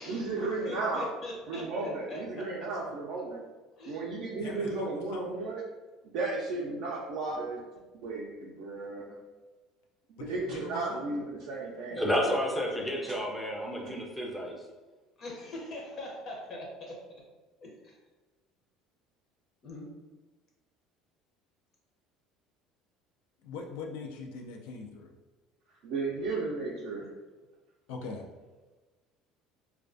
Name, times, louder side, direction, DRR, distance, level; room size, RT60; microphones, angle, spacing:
voice 1, 0.1-1.1 1.5-3.4 3.9-5.6 6.1-7.6 8.0-9.2 10.2-12.4 13.0-13.2 13.8-13.9 25.8-27.1, right 3 dB, 65° right, -5 dB, 0.4 m, -34 dB
voice 2, 0.6-2.7 3.8-4.1 4.5-4.9 15.2-17.2 17.6-18.0 19.6-20.0, left 1 dB, 40° left, -1 dB, 0.6 m, -42 dB
voice 3, 4.4-5.3 10.2-11.2 23.4-25.1 27.9-28.3, left 4 dB, 85° left, 1 dB, 0.3 m, -42 dB
voice 4, 12.0-14.6, equal, ahead, -1 dB, 0.4 m, -30 dB
2.3 x 2.2 x 2.5 m, 1.2 s
cardioid pair, 125°, 0 cm